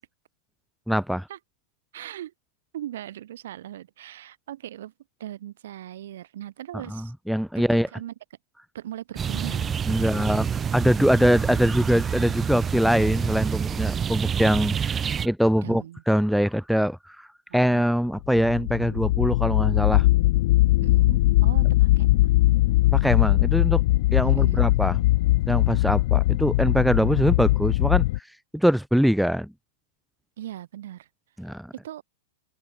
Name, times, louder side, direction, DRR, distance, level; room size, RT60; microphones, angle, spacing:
voice 1, 0.9-1.3 6.9-7.9 9.9-17.3 17.5-20.1 22.9-23.8 24.1-25.0 25.5-28.0 28.5-29.5 31.4-31.7, equal, ahead, 0.6 m, -23 dB
voice 2, 1.9-2.3 2.7-4.9 5.2-7.1 7.6-7.7 7.9-8.1 8.7-10.4 15.6-16.0 17.5-17.8 20.8-22.5 24.2-24.8 30.4-31.1 31.7-32.0, right 12 dB, 70° right, 7.2 m, -39 dB
sound 1, 9.2-15.3, right 7 dB, 15° right, 3.1 m, -27 dB
sound 2, 18.2-28.2, left 18 dB, 55° left, 3.3 m, -20 dB
open air
supercardioid pair, 150°, 0 cm